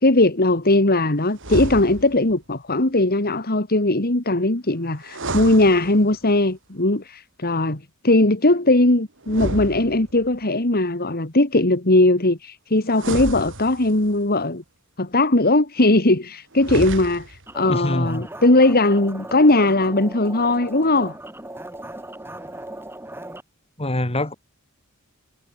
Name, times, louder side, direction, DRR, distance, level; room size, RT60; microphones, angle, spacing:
voice 1, 0.0-14.6 15.0-21.2, left 2 dB, 45° left, 2.4 m, -19 dB
sound 1, 1.4-2.3 5.0-6.4 9.2-10.4 12.9-14.2 16.5-17.5, right 1 dB, 60° right, 7.7 m, -31 dB
sound 2, 17.5-23.4, right 1 dB, 10° right, 6.4 m, -38 dB
voice 2, 17.7-18.3 23.8-24.3, left 1 dB, 25° left, 3.4 m, -24 dB
head